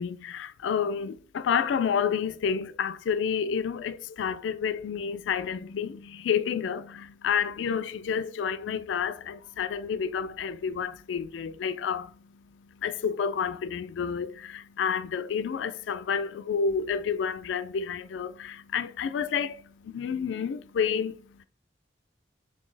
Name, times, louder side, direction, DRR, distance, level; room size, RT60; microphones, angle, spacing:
voice 1, 0.0-21.4, left 7 dB, 90° left, 0.3 m, -30 dB
4.2 x 3.3 x 3.2 m
head